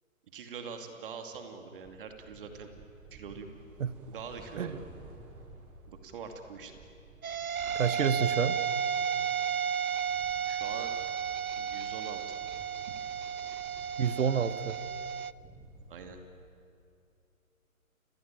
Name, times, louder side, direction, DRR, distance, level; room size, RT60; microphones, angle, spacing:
voice 1, 0.3-2.7 3.1-3.5 4.1-4.8 5.9-6.7 10.4-10.9 11.6-12.4 12.9-13.0 13.4-13.5 15.9-16.2, right 6 dB, 40° right, 5 dB, 2.6 m, -44 dB
sound 1, 1.8-16.2, right 3 dB, 5° right, 0.6 m, -54 dB
sound 2, 7.2-15.3, right 7 dB, 85° right, 0.8 m, -33 dB
voice 2, 7.7-8.6 14.0-14.8, right 7 dB, 60° right, 15 dB, 1.3 m, -28 dB
29.0 x 22.0 x 9.0 m, 2.5 s
hypercardioid pair, 150°, 42 cm